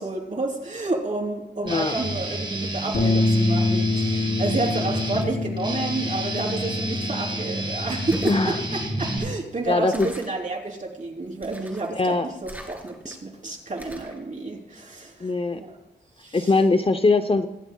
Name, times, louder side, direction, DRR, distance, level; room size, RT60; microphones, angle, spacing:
voice 1, 0.0-8.6 9.0-15.8 16.2-16.5, right 2 dB, 45° right, -1 dB, 3.3 m, -30 dB
voice 2, 1.6-2.0 8.2-8.6 9.7-10.1 11.9-12.3 15.2-15.6 16.3-17.5, left 3 dB, 30° left, 8 dB, 0.7 m, -21 dB
Guitar, 1.7-9.7, right 2 dB, 25° right, 1.8 m, -30 dB
Bass guitar, 2.9-9.2, left 3 dB, 70° left, 3.5 m, -26 dB
sound 1, 8.1-8.5 9.9-10.4 11.4-11.9 12.4-13.1 13.8-14.2, right 1 dB, 10° right, 2.3 m, -38 dB
23.0 x 11.5 x 2.3 m, 0.91 s
wide cardioid pair, 100°, 19 cm